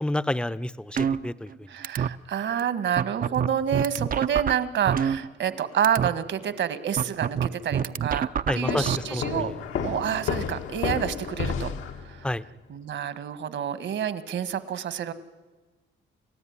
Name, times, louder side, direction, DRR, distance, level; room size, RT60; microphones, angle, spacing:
voice 1, 0.0-1.7 8.5-9.5 12.2-12.4, left 1 dB, 5° left, 15 dB, 0.7 m, -29 dB
sound 1, 1.0-1.6 1.8-2.1 2.6-2.7 3.0-5.6 5.8-6.1 7.0-9.0, right 8 dB, 45° right, 0.7 m, -26 dB
voice 2, 1.7-9.5 9.8-12.3 12.7-15.1, right 9 dB, 65° right, 13 dB, 1.7 m, -28 dB
sound 2, 8.7-12.4, left 6 dB, 80° left, 1.8 m, -31 dB
29.5 x 14.5 x 9.7 m, 1.2 s
cardioid pair, 90°, 20 cm